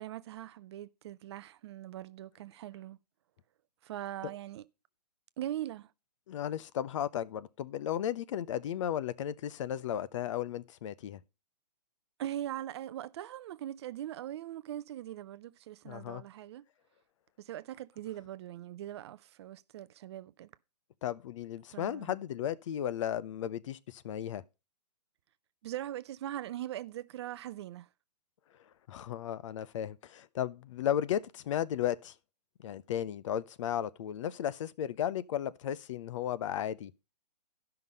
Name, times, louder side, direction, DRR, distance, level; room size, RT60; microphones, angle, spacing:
voice 1, 0.0-3.0 3.8-4.7 5.4-5.9 12.2-16.6 17.4-20.5 21.7-22.2 25.6-27.9, right 12 dB, 40° right, 0.4 m, -41 dB
voice 2, 6.3-11.2 15.9-16.2 21.0-24.4 28.9-32.1 32.6-36.9, left 10 dB, 50° left, 0.6 m, -35 dB
12.0 x 5.8 x 5.3 m
hypercardioid pair, 135°, 21 cm